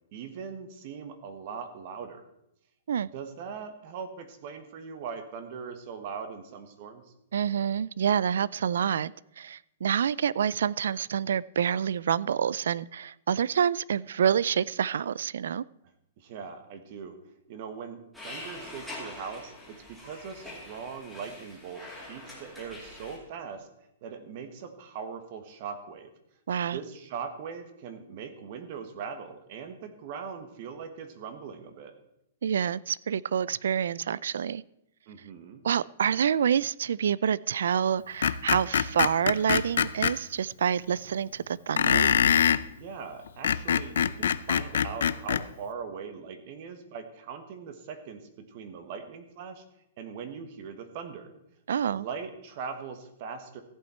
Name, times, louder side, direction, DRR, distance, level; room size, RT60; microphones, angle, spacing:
voice 1, 0.1-2.2 3.1-7.1 16.2-17.2 17.5-23.7 24.0-26.1 26.7-31.9 35.1-35.6 42.8-49.6 50.0-51.3 51.9-53.6, right 6 dB, 40° right, 1.3 m, -40 dB
voice 2, 7.3-15.6 26.5-26.8 32.4-34.6 35.6-42.1 51.7-52.1, right 8 dB, 75° right, 0.3 m, -27 dB
sound 1, 18.1-23.2, left 1 dB, ahead, 2.4 m, -44 dB
Screech, 38.2-40.1 41.8-42.6 43.3-45.4, left 8 dB, 80° left, 0.5 m, -24 dB
14.5 x 8.6 x 4.3 m
hypercardioid pair, 170°, 0 cm